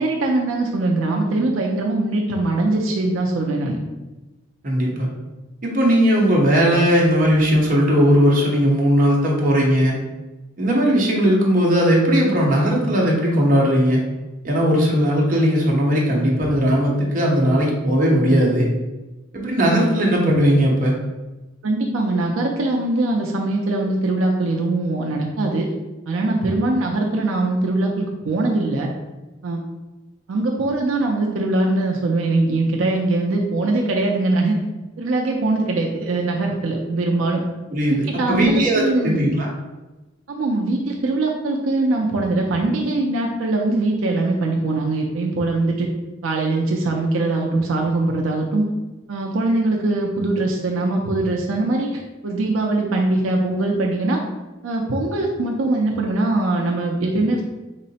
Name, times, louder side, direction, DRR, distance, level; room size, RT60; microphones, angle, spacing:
voice 1, 0.0-3.8 21.6-25.7 26.1-28.9 29.4-29.6 30.3-34.6 35.0-37.4 37.9-39.2 40.3-45.9 46.2-48.6 49.1-54.2 54.6-57.4, right 2 dB, 85° right, 0 dB, 0.5 m, -22 dB
voice 2, 4.6-5.1 5.6-9.9 10.6-14.0 14.4-18.7 19.3-21.0 37.7-39.5, equal, 45° right, -2 dB, 0.9 m, -18 dB
3.7 x 2.0 x 4.1 m, 1.1 s
head